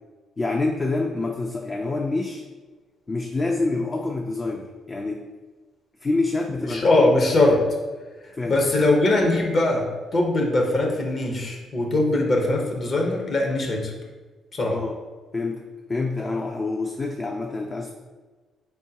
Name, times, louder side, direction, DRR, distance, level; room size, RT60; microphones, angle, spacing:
voice 1, 0.4-2.4 3.1-5.3 6.0-7.1 8.3-8.6 14.7-15.0 15.3-17.9, left 3 dB, 30° left, 2 dB, 0.3 m, -27 dB
voice 2, 6.7-7.6 8.5-9.8 10.1-13.9 14.5-14.8, left 2 dB, 50° left, 1 dB, 0.8 m, -21 dB
3.8 x 3.5 x 2.8 m, 1.3 s
cardioid pair, 90°, 0 cm